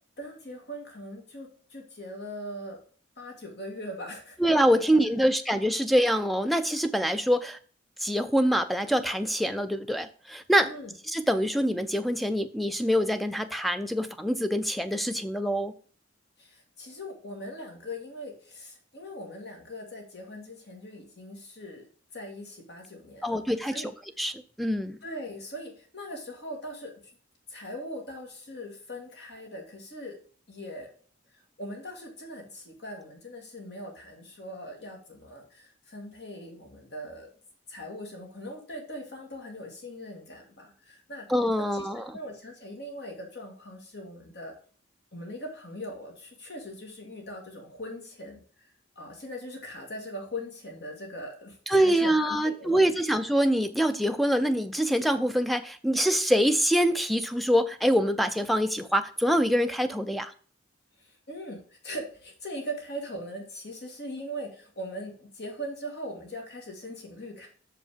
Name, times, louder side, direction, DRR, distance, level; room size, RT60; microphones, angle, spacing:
voice 1, 0.2-2.8 3.2-4.4 4.9-5.2 10.6-10.9 16.4-21.9 22.1-23.9 25.0-26.9 27.5-30.2 30.5-30.9 31.6-37.3 37.7-41.3 41.8-44.5 45.1-52.8 61.0-67.5, equal, 60° left, 1 dB, 2.0 m, -40 dB
voice 2, 4.4-7.6 8.0-10.7 11.1-15.7 23.2-23.9 24.2-24.3 24.6-25.0 41.3-42.2 51.7-60.3, equal, ahead, 9 dB, 0.5 m, -25 dB
6.4 x 5.3 x 5.0 m, 0.43 s
head